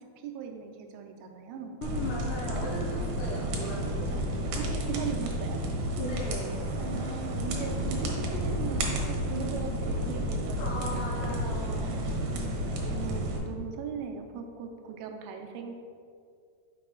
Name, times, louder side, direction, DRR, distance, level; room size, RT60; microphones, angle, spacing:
voice 1, 0.0-1.9 4.6-5.6 6.7-11.4 11.8-15.7, right 6 dB, 90° right, 4 dB, 2.7 m, -39 dB
voice 2, 1.8-4.1 6.0-6.6 10.6-11.9, left 1 dB, 70° left, -4 dB, 2.2 m, -37 dB
sound 1, 1.8-13.4, equal, 75° right, 1.9 m, -31 dB
6.8 x 4.8 x 3.7 m, 2.2 s
omnidirectional pair, 4.5 m